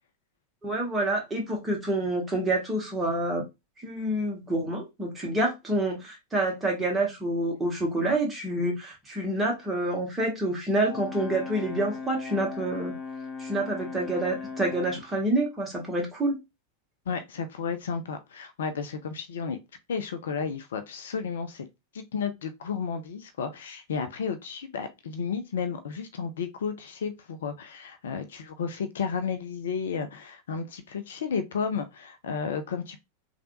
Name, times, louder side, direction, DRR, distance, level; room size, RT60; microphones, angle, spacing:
voice 1, 0.6-3.4 3.8-12.9 13.4-16.4, right 1 dB, 15° right, 1.4 m, -27 dB
Brass instrument, 10.8-15.1, left 5 dB, 30° left, 1.3 m, -38 dB
voice 2, 17.1-19.6 19.9-21.7 21.9-33.0, left 6 dB, 60° left, 0.5 m, -32 dB
3.3 x 2.5 x 2.6 m
figure-of-eight pair, 90°, 0 cm